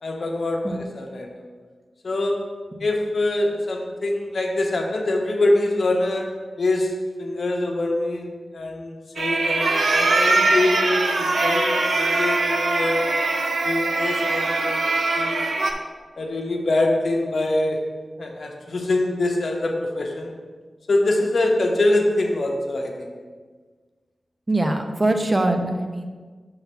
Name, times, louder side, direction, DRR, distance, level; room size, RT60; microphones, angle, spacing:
voice 1, 0.0-1.3 2.0-2.4 2.8-6.3 6.6-6.9 7.2-8.3 8.5-13.1 13.6-14.8 15.1-15.4 16.2-17.8 18.2-20.3 20.9-23.1, left 2 dB, 70° left, 0 dB, 1.0 m, -24 dB
sound 1, 9.2-15.7, right 3 dB, 80° right, 0.6 m, -22 dB
voice 2, 24.5-26.1, right 2 dB, 30° right, 4 dB, 0.8 m, -22 dB
5.7 x 3.9 x 5.6 m, 1.4 s
cardioid pair, 45°, 0 cm